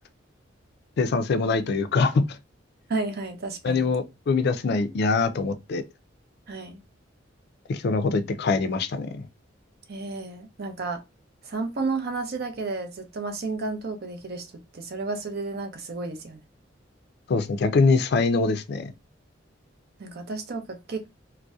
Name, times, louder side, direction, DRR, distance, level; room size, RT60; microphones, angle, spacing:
voice 1, 1.0-2.2 3.6-5.8 7.7-9.2 17.3-18.9, left 4 dB, 55° left, 0.4 m, -23 dB
voice 2, 2.9-3.9 6.5-6.8 9.9-11.0 11.4-14.5 14.7-16.4 20.0-21.1, right 3 dB, 55° right, 0.6 m, -32 dB
2.6 x 2.1 x 2.3 m
head